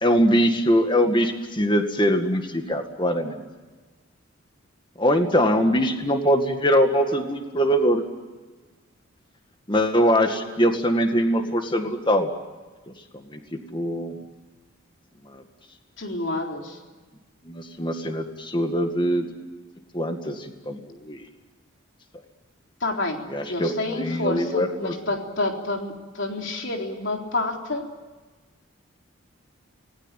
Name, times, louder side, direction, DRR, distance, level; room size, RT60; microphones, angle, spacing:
voice 1, 0.0-3.4 5.0-8.0 9.7-12.3 13.1-14.2 15.3-15.4 17.4-19.3 19.9-21.3 23.3-24.9, equal, 20° left, 6 dB, 2.0 m, -22 dB
voice 2, 16.0-16.8 22.8-23.2 23.5-27.8, left 2 dB, 60° left, 2 dB, 3.9 m, -28 dB
28.0 x 20.0 x 9.1 m, 1.3 s
head